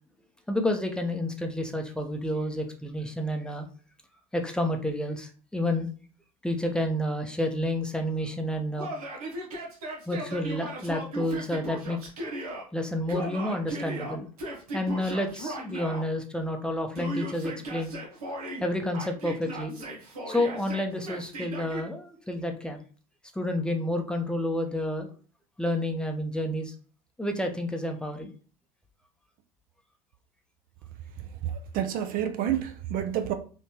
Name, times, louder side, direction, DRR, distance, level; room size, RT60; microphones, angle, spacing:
voice 1, 0.5-3.7 4.3-5.9 6.4-8.9 10.1-12.0 12.7-14.3 14.7-17.9 18.6-19.8 20.3-22.8 23.3-25.1 25.6-26.7 27.2-28.3, left 1 dB, 5° left, 0.6 m, -30 dB
Yell, 8.8-12.6 13.1-16.0 16.9-18.6 18.9-21.8, right 1 dB, 90° right, 1.1 m, -37 dB
voice 2, 31.4-33.3, right 10 dB, 50° right, 0.4 m, -29 dB
3.3 x 2.6 x 2.8 m
hypercardioid pair, 85°, 19 cm